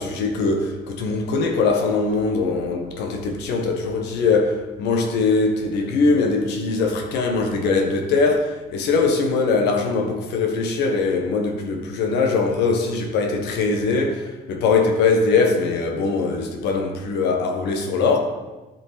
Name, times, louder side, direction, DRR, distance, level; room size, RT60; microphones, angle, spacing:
voice 1, 0.0-18.2, left 4 dB, 85° left, 1.3 m, -21 dB
12.5 x 5.2 x 4.1 m
cardioid pair, 110°, 17 cm